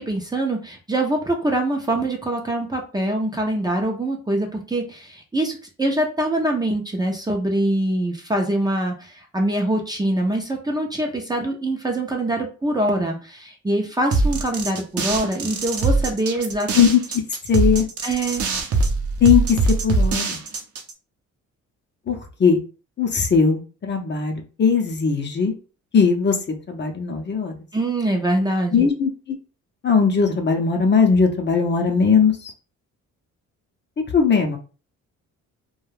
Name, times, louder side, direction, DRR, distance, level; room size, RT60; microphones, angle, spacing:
voice 1, 0.0-16.7 18.0-18.5 27.7-28.9, right 1 dB, 15° right, 1 dB, 0.6 m, -24 dB
sound 1, 14.1-20.9, right 3 dB, 50° right, 0.6 m, -22 dB
voice 2, 17.5-17.9 19.2-20.4 22.1-22.6 23.0-25.5 25.9-26.4 26.7-27.5 28.7-29.1 29.8-32.5 34.1-34.6, left 6 dB, 35° left, 3 dB, 0.7 m, -19 dB
2.3 x 2.3 x 3.2 m, 0.35 s
cardioid pair, 90°, 30 cm